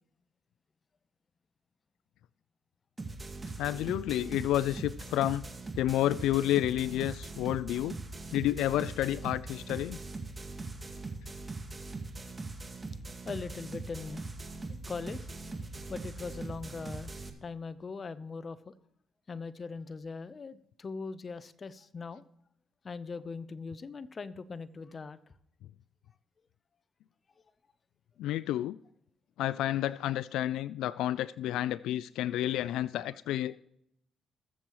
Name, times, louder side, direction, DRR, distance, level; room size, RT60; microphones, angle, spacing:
sound 1, 3.0-17.3, right 3 dB, 25° right, 2.0 m, -41 dB
voice 1, 3.6-5.4 5.8-8.0 8.3-10.0 28.2-28.8 29.4-33.6, left 13 dB, 90° left, 0.3 m, -30 dB
voice 2, 13.3-14.2 14.9-15.3 15.9-17.1 17.4-18.7 19.3-22.2 22.8-25.2, left 4 dB, 35° left, 0.8 m, -40 dB
21.0 x 7.4 x 3.1 m
cardioid pair, 90°, 0 cm